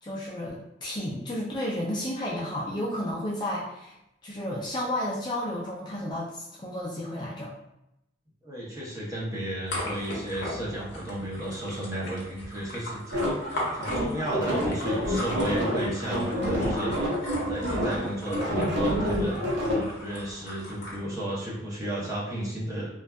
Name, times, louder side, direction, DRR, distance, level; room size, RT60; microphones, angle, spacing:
voice 1, 0.0-4.0 4.2-7.5, left 1 dB, 25° left, -5 dB, 0.3 m, -32 dB
voice 2, 8.4-17.0 17.3-22.9, right 1 dB, 20° right, -7 dB, 0.7 m, -33 dB
sound 1, 9.7-21.0, left 1 dB, 65° left, 0.8 m, -38 dB
sound 2, 13.1-19.8, equal, 75° right, 0.7 m, -28 dB
2.6 x 2.2 x 2.2 m, 0.86 s
head